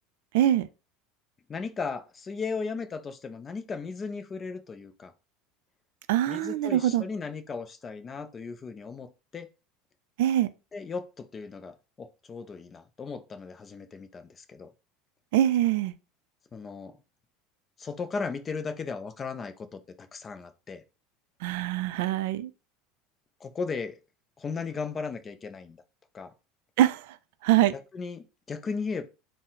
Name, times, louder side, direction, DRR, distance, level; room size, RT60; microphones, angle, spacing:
voice 1, 0.3-0.7 6.1-7.0 10.2-10.5 15.3-15.9 21.4-22.5 26.8-27.2 27.4-27.7, right 12 dB, 75° right, 0.3 m, -23 dB
voice 2, 1.5-5.1 6.3-9.5 10.7-14.7 16.5-17.0 17.8-19.8 20.1-20.8 23.4-24.0 24.4-25.8 26.1-26.3 27.9-29.0, left 4 dB, 20° left, 0.3 m, -36 dB
4.1 x 2.0 x 3.8 m
cardioid pair, 165°, 0 cm